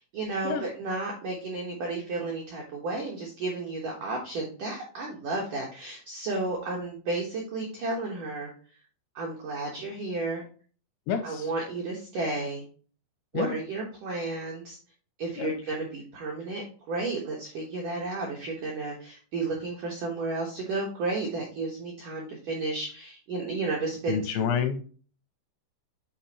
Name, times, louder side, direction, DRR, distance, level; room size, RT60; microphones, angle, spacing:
voice 1, 0.0-8.5 9.2-10.4 11.2-12.6 13.3-14.8 15.2-24.5, right 3 dB, 75° right, -2 dB, 1.9 m, -32 dB
voice 2, 11.1-11.5 13.3-13.6 15.4-15.5 24.1-24.8, left 7 dB, 85° left, 7 dB, 2.7 m, -28 dB
9.3 x 4.3 x 2.9 m, 0.40 s
omnidirectional pair, 5.6 m